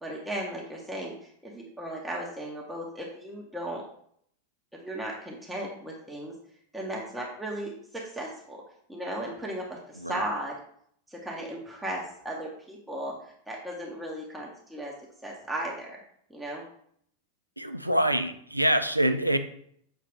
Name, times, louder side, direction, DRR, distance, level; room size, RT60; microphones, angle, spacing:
voice 1, 0.0-3.8 4.8-6.3 6.7-8.6 8.9-9.8 10.0-10.6 11.1-14.9 15.2-16.0 16.3-16.6, right 1 dB, 5° right, -3 dB, 0.8 m, -36 dB
voice 2, 17.6-19.4, right 1 dB, 90° right, 9 dB, 0.3 m, -25 dB
6.0 x 2.4 x 3.5 m, 0.66 s
figure-of-eight pair, 90°, 0 cm